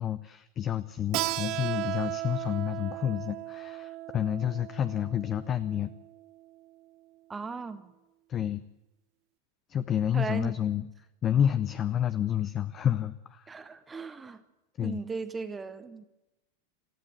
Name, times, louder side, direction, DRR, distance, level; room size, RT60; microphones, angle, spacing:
voice 1, 0.0-5.9 8.3-8.6 9.7-10.9 11.2-13.5 14.8-15.0, left 10 dB, 25° left, 14 dB, 0.7 m, -29 dB
Keyboard (musical), 1.1-6.4, right 18 dB, 40° right, 0.6 m, -36 dB
voice 2, 7.3-7.9 10.1-10.5 13.5-14.4 14.8-16.0, right 4 dB, 15° right, 11 dB, 1.1 m, -37 dB
20.0 x 14.5 x 8.9 m, 0.95 s
figure-of-eight pair, 90°, 0 cm